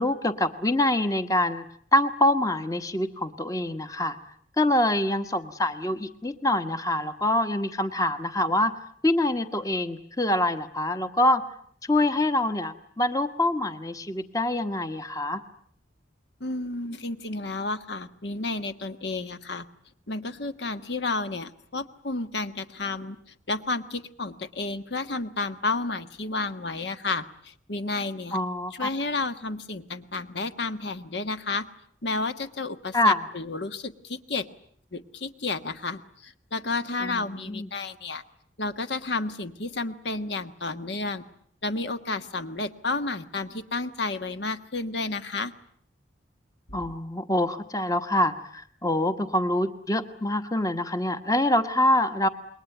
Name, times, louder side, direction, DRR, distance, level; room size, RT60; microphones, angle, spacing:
voice 1, 0.0-1.7 1.9-4.2 4.6-8.7 9.0-11.4 11.9-15.4 28.3-28.9 32.9-33.2 37.0-37.7 46.7-52.3, left 1 dB, 20° left, 9 dB, 1.2 m, -25 dB
voice 2, 16.4-19.7 20.1-23.2 23.5-28.4 28.7-31.6 32.0-34.5 34.9-38.2 38.6-41.2 41.6-45.5 46.7-46.8, left 3 dB, 65° left, 9 dB, 1.4 m, -31 dB
28.0 x 22.0 x 9.2 m, 0.64 s
head